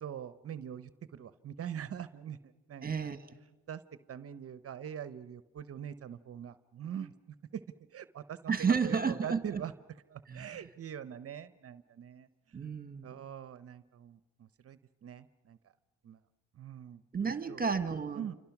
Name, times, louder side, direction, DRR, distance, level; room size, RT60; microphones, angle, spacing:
voice 1, 0.0-2.4 2.7-3.1 3.7-3.8 4.1-7.6 7.9-9.7 10.1-12.7 13.0-15.6 16.0-16.2 16.5-17.0 17.5-17.7 18.2-18.4, right 9 dB, 50° right, 13 dB, 0.8 m, -43 dB
voice 2, 2.8-3.2 8.5-9.4 10.3-10.6 12.5-13.2 17.1-18.2, right 5 dB, 30° right, 10 dB, 1.5 m, -32 dB
28.5 x 25.0 x 6.0 m, 1.2 s
cardioid pair, 90°, 30 cm